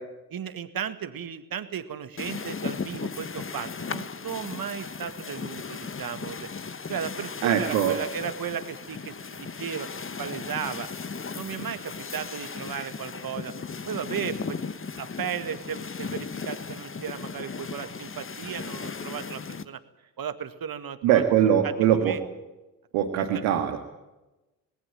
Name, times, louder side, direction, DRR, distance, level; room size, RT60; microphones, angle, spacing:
voice 1, 0.3-6.5 6.9-9.9 10.2-10.9 11.3-13.5 13.9-14.6 15.0-19.8 20.2-21.2 21.6-22.2 23.2-23.3, right 8 dB, 45° right, 11 dB, 1.9 m, -35 dB
sound 1, 2.2-19.6, left 5 dB, 25° left, 1.3 m, -36 dB
voice 2, 7.4-7.9 21.0-22.1 22.9-23.8, right 10 dB, 75° right, 3 dB, 2.1 m, -22 dB
19.5 x 19.0 x 9.0 m, 1.0 s
hypercardioid pair, 50°, 49 cm